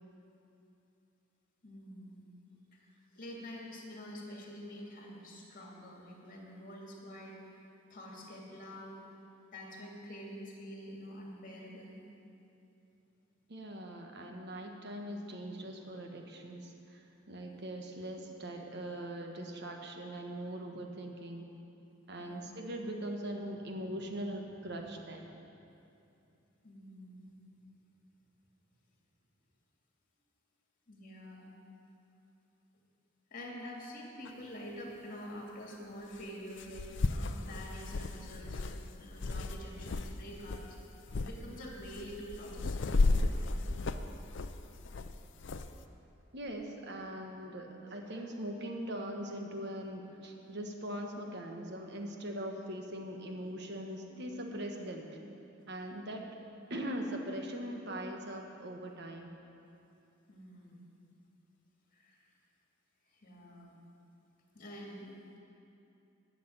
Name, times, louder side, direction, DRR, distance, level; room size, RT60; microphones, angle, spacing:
voice 1, 1.6-2.2 2.7-7.6 7.9-9.0 9.5-12.0 22.2-22.5 26.6-27.4 30.9-31.5 33.3-38.7 39.0-40.8 41.1-43.6 60.3-60.8 61.9-62.2 63.1-63.8 64.5-65.1, equal, 45° left, -1 dB, 2.3 m, -47 dB
voice 2, 13.5-21.5 22.1-25.4 46.3-55.1 55.7-56.2 56.7-59.3, right 1 dB, 60° right, 3 dB, 1.3 m, -41 dB
sound 1, 34.3-34.4 36.2-36.3 36.6-40.1 40.4-40.7 41.1-41.3 41.8-45.7, left 3 dB, 65° left, 0.5 m, -33 dB
12.0 x 6.8 x 9.2 m, 2.7 s
head